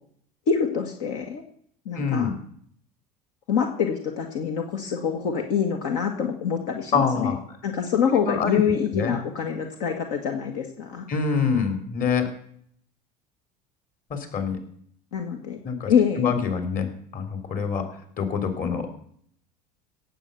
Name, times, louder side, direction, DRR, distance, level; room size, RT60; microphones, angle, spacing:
voice 1, 0.5-1.4 1.9-2.3 3.5-7.3 7.6-11.0 15.1-15.6 15.9-16.3, left 7 dB, 70° left, 3 dB, 2.0 m, -25 dB
voice 2, 1.9-2.3 6.9-7.4 8.1-8.6 8.9-9.2 11.1-12.3 14.1-14.6 15.6-15.9 16.2-17.9 18.2-19.0, left 6 dB, 45° left, 7 dB, 3.5 m, -25 dB
17.0 x 7.8 x 7.0 m, 0.64 s
hypercardioid pair, 75°, 21 cm